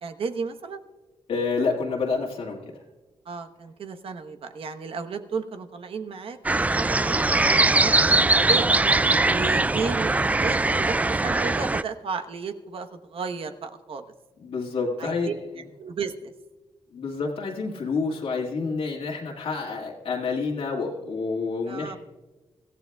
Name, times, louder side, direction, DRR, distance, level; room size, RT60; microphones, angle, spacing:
voice 1, 0.0-0.8 3.3-8.8 9.3-14.0 15.0-15.3 15.8-16.3 21.7-22.0, right 5 dB, 65° right, 7 dB, 1.1 m, -33 dB
voice 2, 1.3-2.8 14.4-15.4 16.9-22.0, left 4 dB, 75° left, -3 dB, 1.9 m, -28 dB
sound 1, 6.4-11.8, right 2 dB, 15° right, 0.3 m, -21 dB
24.5 x 15.0 x 2.3 m, 1.2 s
cardioid pair, 80°, 10 cm